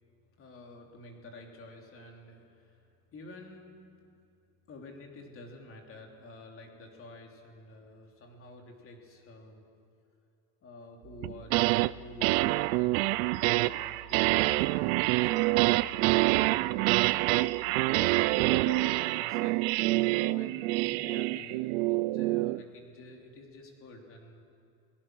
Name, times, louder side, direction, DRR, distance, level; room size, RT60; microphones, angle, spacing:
voice 1, 0.4-4.0 4.7-9.6 10.6-24.4, left 2 dB, 30° left, 2 dB, 3.2 m, -49 dB
sound 1, 11.2-11.9 12.2-22.6, right 21 dB, 80° right, 0.6 m, -26 dB
28.0 x 18.0 x 6.3 m, 2.6 s
cardioid pair, 155°, 41 cm